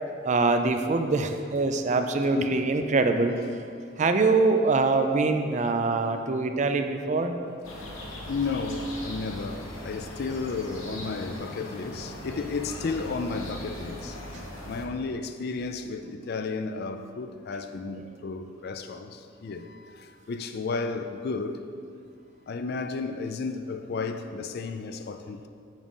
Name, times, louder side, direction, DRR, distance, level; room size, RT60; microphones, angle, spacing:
voice 1, 0.2-3.3 4.0-7.3, right 3 dB, 35° right, 0.4 m, -24 dB
voice 2, 2.4-2.7 8.3-14.4 14.7-21.6 22.5-25.5, left 4 dB, 50° left, 0.4 m, -33 dB
sound 1, 7.6-14.9, left 1 dB, 80° left, 1.1 m, -39 dB
7.4 x 4.9 x 5.4 m
head